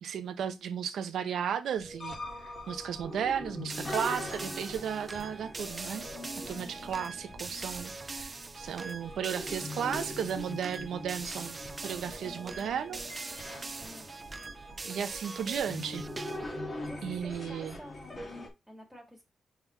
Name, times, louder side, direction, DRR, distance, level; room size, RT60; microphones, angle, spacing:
voice 1, 0.0-2.2 2.4-6.1 6.5-13.0 14.8-16.1 17.0-17.8, right 8 dB, 85° right, 0.8 m, -35 dB
sound 1, 1.8-18.5, left 2 dB, 30° left, 2.3 m, -42 dB
sound 2, 3.7-16.6, right 3 dB, 25° right, 0.3 m, -42 dB
voice 2, 6.4-6.8 13.8-14.1 16.8-19.2, equal, ahead, 2.4 m, -50 dB
5.8 x 4.0 x 4.6 m
wide cardioid pair, 130°, 0 cm